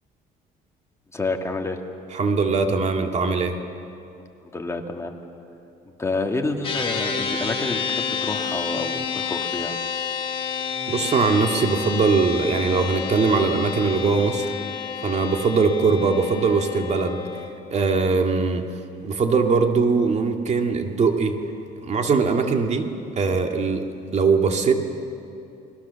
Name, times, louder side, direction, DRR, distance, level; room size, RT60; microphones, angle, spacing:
voice 1, 1.1-1.8 4.4-5.1 6.0-9.8, left 3 dB, 15° left, 3 dB, 2.2 m, -28 dB
voice 2, 2.1-3.6 10.9-14.5 15.0-17.3 17.7-18.6 19.0-21.4 21.8-24.8, right 4 dB, 40° right, 4 dB, 2.3 m, -21 dB
sound 1, 6.6-17.5, left 6 dB, 35° left, 4.2 m, -29 dB
29.5 x 21.0 x 7.1 m, 2.7 s
cardioid pair, 110°, 17 cm